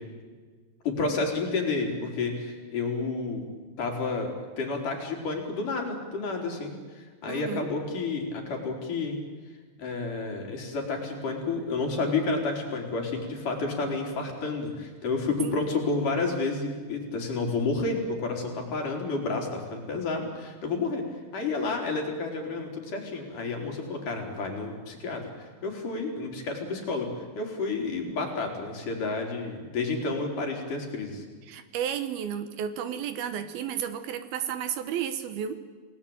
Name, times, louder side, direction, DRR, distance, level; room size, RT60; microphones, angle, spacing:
voice 1, 0.9-3.4 3.8-9.2 9.8-21.0 21.3-31.2, left 3 dB, 50° left, 2 dB, 5.3 m, -30 dB
voice 2, 7.3-7.7 15.4-15.6 31.4-35.6, right 9 dB, 75° right, 10 dB, 2.9 m, -32 dB
28.5 x 19.5 x 8.8 m, 1.5 s
omnidirectional pair, 4.8 m